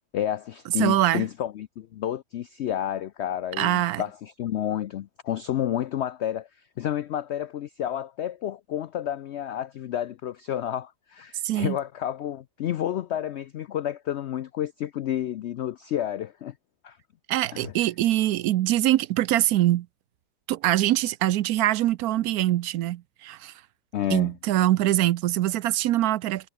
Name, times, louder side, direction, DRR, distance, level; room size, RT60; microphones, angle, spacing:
voice 1, 0.1-6.5 6.8-16.5 16.8-17.0 17.5-17.7 23.9-24.3, left 11 dB, 85° left, 0.6 m, -30 dB
voice 2, 0.8-1.3 3.6-4.0 11.4-11.8 17.3-19.9 20.5-23.5 24.1-26.5, right 14 dB, 70° right, 1.0 m, -23 dB
omnidirectional pair, 1.7 m